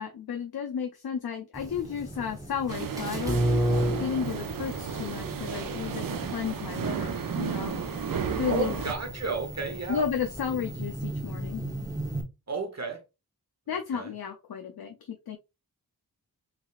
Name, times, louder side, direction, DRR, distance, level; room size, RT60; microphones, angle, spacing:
voice 1, 0.0-3.4 4.0-7.8 8.4-8.7 9.9-11.6 13.7-15.4, left 7 dB, 75° left, 0.6 m, -33 dB
sound 1, 1.5-12.2, right 1 dB, 10° right, 0.9 m, -34 dB
sound 2, 2.7-8.9, right 7 dB, 60° right, 0.6 m, -33 dB
voice 2, 8.5-10.1 12.5-13.0 13.9-14.1, right 4 dB, 45° right, 1.0 m, -32 dB
3.6 x 3.3 x 2.4 m
wide cardioid pair, 75°, 38 cm